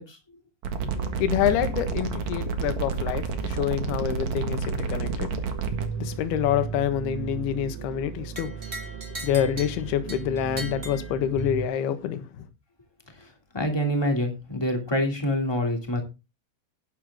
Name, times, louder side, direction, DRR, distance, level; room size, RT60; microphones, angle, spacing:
sound 1, 0.6-5.9, right 5 dB, 60° right, 1.9 m, -29 dB
sound 2, 0.8-11.7, right 5 dB, 80° right, 3.7 m, -36 dB
voice 1, 1.2-5.3 6.0-8.5 9.2-12.4, left 10 dB, 65° left, 3.0 m, -27 dB
sound 3, 8.3-11.7, right 1 dB, 25° right, 1.4 m, -40 dB
voice 2, 13.5-16.0, equal, 10° left, 1.5 m, -26 dB
11.5 x 11.0 x 3.7 m
omnidirectional pair, 5.5 m